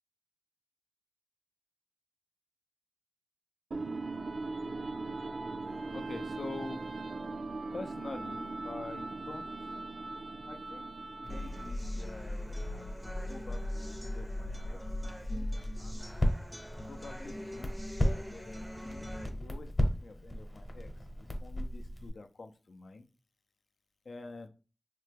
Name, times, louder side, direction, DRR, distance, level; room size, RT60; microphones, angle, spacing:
sound 1, 3.7-11.9, right 3 dB, 80° right, 0.3 m, -39 dB
voice 1, 5.9-6.9 7.7-9.5 10.5-10.9 11.2-16.0 16.9-17.7 18.0-20.9 21.4-23.1 24.1-24.5, left 3 dB, 85° left, 7 dB, 0.4 m, -47 dB
Crackle, 11.2-22.1, equal, 40° left, 0.8 m, -36 dB
sound 2, 11.3-19.3, left 1 dB, 5° right, 0.4 m, -46 dB
3.2 x 2.1 x 3.3 m, 0.33 s
cardioid pair, 45°, 0 cm